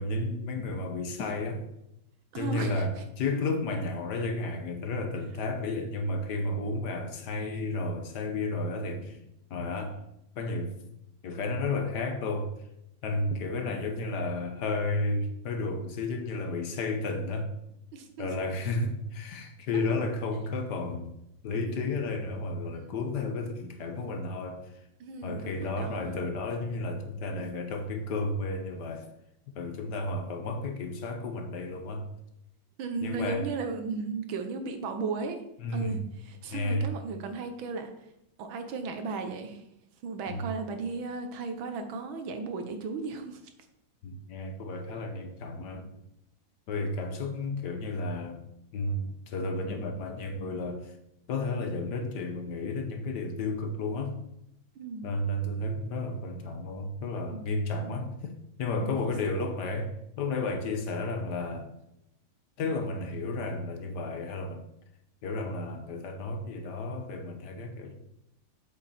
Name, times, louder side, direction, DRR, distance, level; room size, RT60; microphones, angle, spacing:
voice 1, 0.0-1.6 2.3-9.2 9.5-10.0 10.3-10.7 11.2-12.5 13.0-17.5 18.2-21.1 21.4-24.7 25.2-29.1 29.5-32.1 33.0-33.5 35.6-36.0 36.5-36.9 40.3-40.6 44.0-45.9 46.7-48.4 48.7-50.9 51.3-54.2 55.0-58.3 58.6-61.7 62.6-64.6 65.2-68.0, left 2 dB, 65° left, 6 dB, 1.4 m, -32 dB
voice 2, 2.3-3.0 17.9-18.3 22.7-23.0 25.0-26.2 32.8-35.4 35.7-37.9 38.4-39.6 40.0-43.4 54.8-55.1 57.0-57.5 57.8-58.0 58.8-59.0, right 4 dB, 85° right, 7 dB, 1.8 m, -35 dB
7.7 x 6.9 x 4.2 m, 0.81 s
omnidirectional pair, 2.1 m